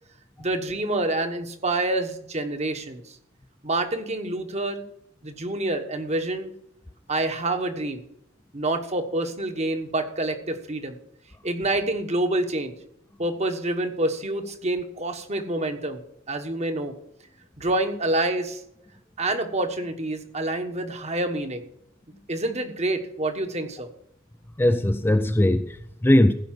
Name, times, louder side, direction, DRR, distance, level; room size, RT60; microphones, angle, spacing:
voice 1, 0.4-3.2 3.6-4.9 5.2-6.5 7.1-8.0 8.5-11.0 11.4-12.7 13.2-16.0 16.3-16.9 17.6-18.6 19.2-21.7 22.3-23.9, right 2 dB, 30° right, 1.2 m, -27 dB
voice 2, 24.6-26.3, left 1 dB, 10° left, 0.4 m, -20 dB
15.5 x 5.5 x 7.4 m
head